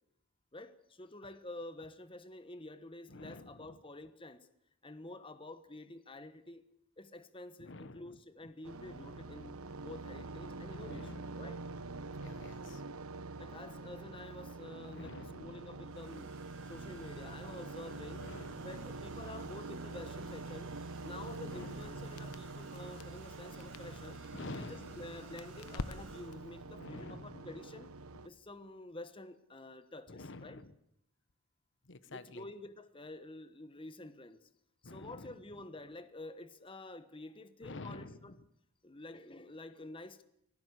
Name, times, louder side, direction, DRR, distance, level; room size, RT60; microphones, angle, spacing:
voice 1, 0.5-4.5 4.8-6.6 7.0-11.6 13.4-16.3 16.6-18.3 18.6-20.7 21.0-24.2 24.5-27.9 28.2-30.6 32.1-34.5 34.8-38.4 38.8-40.2, left 2 dB, 25° left, 12 dB, 1.2 m, -49 dB
voice 2, 3.1-3.7 7.6-8.2 10.8-11.5 12.2-12.8 14.9-15.6 18.1-18.7 21.4-22.1 24.3-25.0 26.8-27.5 30.1-30.7 31.9-32.5 34.8-35.3 37.6-38.3, left 2 dB, 55° left, 14 dB, 1.1 m, -49 dB
sound 1, 8.6-28.3, right 3 dB, 75° right, 1.2 m, -45 dB
Domestic sounds home sounds, 15.8-26.6 27.8-28.1 28.3-28.7, right 5 dB, 60° right, 8.0 m, -58 dB
Crackle, 21.2-26.5, left 2 dB, 80° left, 1.1 m, -49 dB
25.0 x 18.0 x 8.2 m, 0.77 s
head